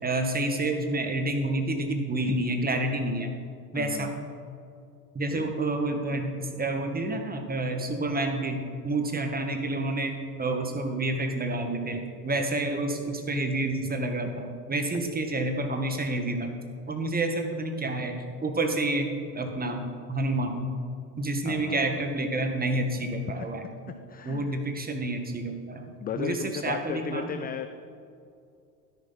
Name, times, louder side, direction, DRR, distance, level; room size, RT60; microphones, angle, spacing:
voice 1, 0.0-3.3 3.7-4.1 5.1-10.1 10.4-16.6 16.9-19.8 20.1-20.7 21.1-23.6 24.2-27.4, right 2 dB, 20° right, 4 dB, 1.7 m, -29 dB
voice 2, 3.7-4.1 5.3-5.5 21.4-22.0 23.4-23.5 24.1-24.6 26.0-27.7, left 8 dB, 20° left, 9 dB, 0.3 m, -35 dB
13.0 x 10.5 x 4.2 m, 2.4 s
hypercardioid pair, 75°, 49 cm